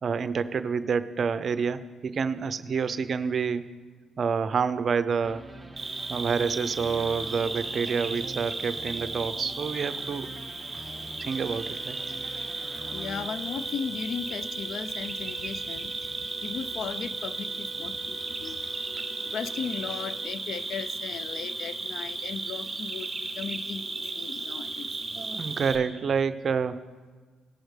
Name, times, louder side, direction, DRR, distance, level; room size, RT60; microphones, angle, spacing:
voice 1, 0.0-3.6 4.2-5.4 6.1-10.3 11.2-12.0 25.2-26.9, right 6 dB, 50° right, 11 dB, 0.5 m, -28 dB
sound 1, 5.2-14.3, right 1 dB, 10° right, 0.8 m, -45 dB
Cricket, 5.8-25.8, right 3 dB, 30° right, 2.0 m, -35 dB
sound 2, 11.3-20.3, right 5 dB, 25° left, 3.0 m, -47 dB
voice 2, 12.9-18.6 19.2-24.9, left 7 dB, 65° left, 15 dB, 0.4 m, -37 dB
17.5 x 6.4 x 3.2 m, 1.4 s
cardioid pair, 90°, 0 cm